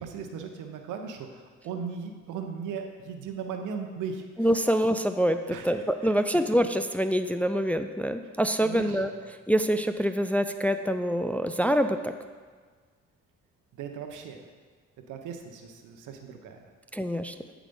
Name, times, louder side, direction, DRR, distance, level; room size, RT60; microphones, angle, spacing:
voice 1, 0.0-4.2 5.5-5.7 6.0-6.2 8.6-9.0 13.7-14.4 15.1-16.7, right 6 dB, 85° right, 5 dB, 0.9 m, -37 dB
voice 2, 4.4-9.1 9.5-12.1 16.9-17.3, equal, 5° left, 8 dB, 0.3 m, -25 dB
8.6 x 5.0 x 5.3 m, 1.5 s
cardioid pair, 90°, 30 cm